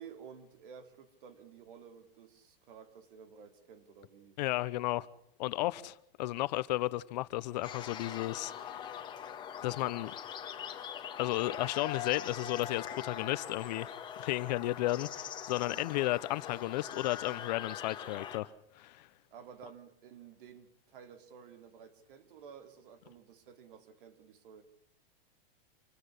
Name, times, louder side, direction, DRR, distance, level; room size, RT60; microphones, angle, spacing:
voice 1, 0.0-4.4 15.6-15.8 19.3-24.6, right 7 dB, 65° right, 3.1 m, -53 dB
voice 2, 4.4-5.1 5.4-9.0 9.6-10.1 11.2-13.9 14.2-18.5 18.8-19.1, left 17 dB, 45° left, 0.8 m, -33 dB
sound 1, 7.6-18.4, left 9 dB, 15° left, 1.9 m, -42 dB
26.5 x 14.5 x 9.9 m
supercardioid pair, 170°, 29 cm